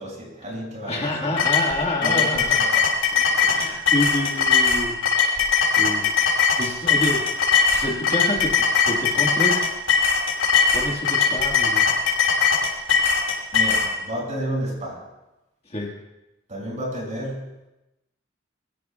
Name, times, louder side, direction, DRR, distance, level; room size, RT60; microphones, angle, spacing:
voice 1, 0.0-1.1 2.0-2.8 13.5-15.0 16.5-17.5, equal, 40° right, -3 dB, 6.8 m, -31 dB
voice 2, 0.9-2.6 3.3-5.0 5.3-5.5 5.8-7.3 7.7-9.7 10.7-11.9 15.7-15.9, left 1 dB, 30° left, 0 dB, 1.9 m, -28 dB
sound 1, 1.4-13.9, left 6 dB, 80° left, 6.2 m, -20 dB
25.0 x 16.0 x 2.4 m, 0.97 s
head